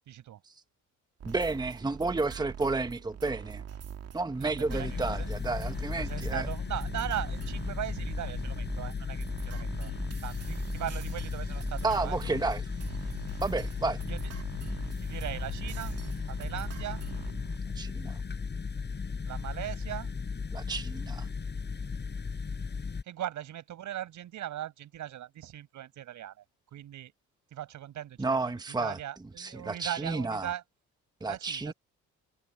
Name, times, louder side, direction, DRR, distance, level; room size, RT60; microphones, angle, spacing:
voice 1, 0.1-0.4 4.4-5.3 5.9-9.9 10.2-12.2 14.1-14.2 15.0-15.9 16.3-17.0 19.3-20.1 23.1-26.3 26.7-27.1 27.5-28.4 28.8-30.6 31.3-31.7, right 12 dB, 75° right, 5.3 m, -39 dB
voice 2, 1.2-3.6 4.1-6.5 11.8-12.7 13.4-14.0 17.7-18.2 20.5-21.3 28.2-29.0 29.4-30.5 31.2-31.7, right 3 dB, 15° right, 1.1 m, -31 dB
sound 1, 1.2-17.6, right 8 dB, 55° right, 2.2 m, -43 dB
gastherme processed, 4.7-23.0, left 5 dB, 35° left, 6.1 m, -35 dB
cardioid pair, 90°, 30 cm